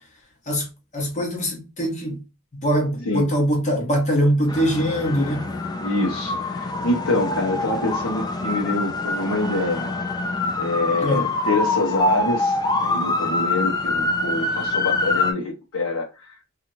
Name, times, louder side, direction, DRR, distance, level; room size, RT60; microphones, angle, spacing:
voice 1, 0.9-2.2 2.6-5.4 11.0-11.3, equal, 35° left, 1.0 m, -22 dB
sound 1, 4.5-15.3, left 2 dB, 20° left, 0.3 m, -25 dB
voice 2, 5.8-9.9 10.6-16.4, left 2 dB, 75° left, 0.8 m, -25 dB
2.9 x 2.4 x 2.6 m
head